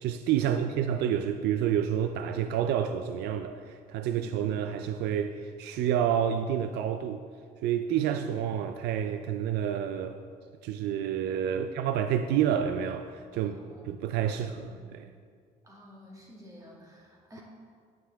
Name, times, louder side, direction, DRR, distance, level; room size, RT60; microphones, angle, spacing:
voice 1, 0.0-7.2 7.6-10.2 10.6-13.6 13.8-15.1, right 9 dB, 80° right, 8 dB, 0.4 m, -29 dB
voice 2, 13.3-13.8 14.3-14.8 15.6-17.4, equal, 20° right, -3 dB, 2.2 m, -51 dB
9.5 x 8.7 x 3.4 m, 2.1 s
cardioid pair, 110°, 17 cm